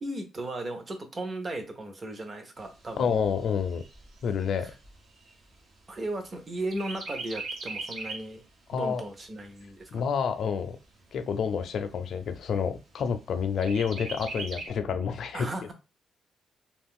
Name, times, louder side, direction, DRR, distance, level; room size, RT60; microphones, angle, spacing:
voice 1, 0.0-3.2 4.6-4.8 5.9-8.4 8.7-10.0 15.3-15.7, right 1 dB, 25° right, 0.6 m, -36 dB
Chirp tweet, 2.6-6.3 6.7-8.4 8.8-8.9 9.3-10.3 10.8-10.9 11.3-11.4 11.8-12.4 13.6-14.7, right 3 dB, 65° right, 0.9 m, -40 dB
voice 2, 3.0-3.8 4.2-4.7 8.7-9.0 9.9-10.8 11.1-15.5, left 6 dB, 60° left, 0.4 m, -28 dB
2.4 x 2.3 x 3.6 m
cardioid pair, 145°, 0 cm